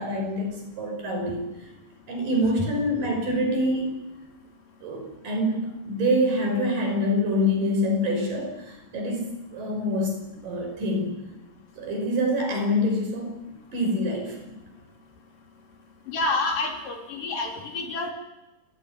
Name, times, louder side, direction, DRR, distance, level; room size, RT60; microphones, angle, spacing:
voice 1, 0.0-1.5 2.1-3.9 4.8-10.1 10.4-11.2 11.8-13.4 13.7-14.4, left 1 dB, 85° right, 2 dB, 7.2 m, -26 dB
voice 2, 16.1-18.1, left 3 dB, 75° left, 3 dB, 5.1 m, -28 dB
28.5 x 16.0 x 9.8 m, 1.0 s
omnidirectional pair, 3.8 m